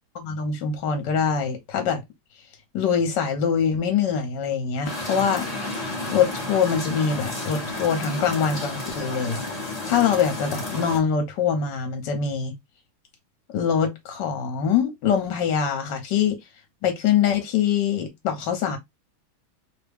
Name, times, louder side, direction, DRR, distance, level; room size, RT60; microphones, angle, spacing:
voice 1, 0.1-2.0 2.7-5.5 6.1-9.4 9.8-12.5 13.5-16.4 16.8-18.8, left 7 dB, 65° left, 1.6 m, -24 dB
sound 1, 4.8-11.0, left 2 dB, 30° left, 0.7 m, -31 dB
3.5 x 2.3 x 3.4 m
omnidirectional pair, 2.2 m